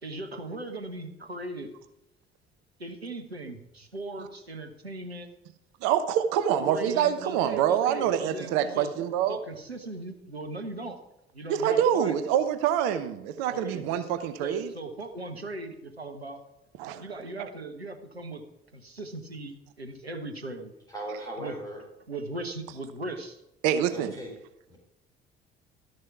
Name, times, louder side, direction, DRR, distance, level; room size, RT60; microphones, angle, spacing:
voice 1, 0.0-1.7 2.8-5.3 6.6-8.9 9.3-11.0 11.3-12.1 13.5-14.1 14.4-16.4 17.0-18.4 18.7-20.7 21.4-21.5 22.1-23.4, right 2 dB, 90° right, 6 dB, 1.0 m, -38 dB
voice 2, 5.8-9.4 11.5-14.7 16.8-17.0 23.6-24.1, right 9 dB, 60° right, 11 dB, 1.0 m, -26 dB
voice 3, 20.9-21.8 23.9-24.3 24.7-24.8, right 1 dB, 10° left, -2 dB, 4.0 m, -38 dB
13.0 x 6.6 x 4.8 m, 0.87 s
figure-of-eight pair, 50°, 31 cm